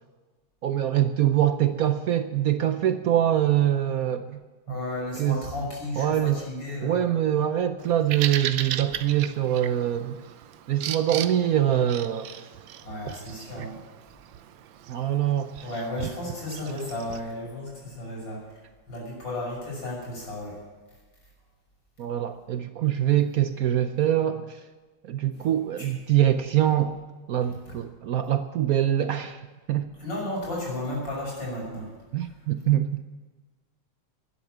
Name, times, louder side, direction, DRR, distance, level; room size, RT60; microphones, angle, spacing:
voice 1, 0.6-4.4 4.7-4.8 5.2-5.4 6.0-6.4 6.8-10.2 10.7-12.5 14.9-15.5 22.0-24.6 25.0-27.0 27.3-29.4 29.7-29.9 32.1-33.0, right 11 dB, 65° right, 10 dB, 0.9 m, -24 dB
voice 2, 4.7-7.1 12.8-13.8 15.0-15.1 15.6-20.6 25.3-25.5 25.8-25.9 27.7-27.8 30.0-31.9, left 1 dB, 80° left, -3 dB, 7.1 m, -34 dB
Bird vocalization bird call bird song, 7.8-17.2, right 10 dB, 85° right, 1.4 m, -37 dB
12.5 x 10.0 x 9.2 m, 1.3 s
omnidirectional pair, 2.0 m